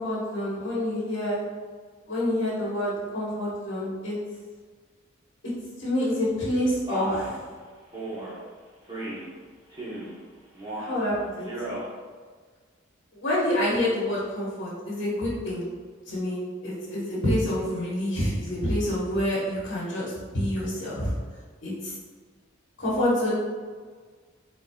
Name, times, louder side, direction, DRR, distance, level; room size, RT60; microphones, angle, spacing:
voice 1, 0.0-1.4 2.1-4.2 5.8-7.3 10.8-11.5 13.1-15.6 16.1-21.1 21.6-21.9 22.8-23.3, left 1 dB, 65° left, -7 dB, 1.3 m, -27 dB
Male speech man speaking, 6.9-7.3 7.9-8.3 8.9-9.3 9.7-10.1 10.5-11.0 11.4-11.9, right 1 dB, 20° right, 1.0 m, -34 dB
4.6 x 3.7 x 2.3 m, 1.5 s
head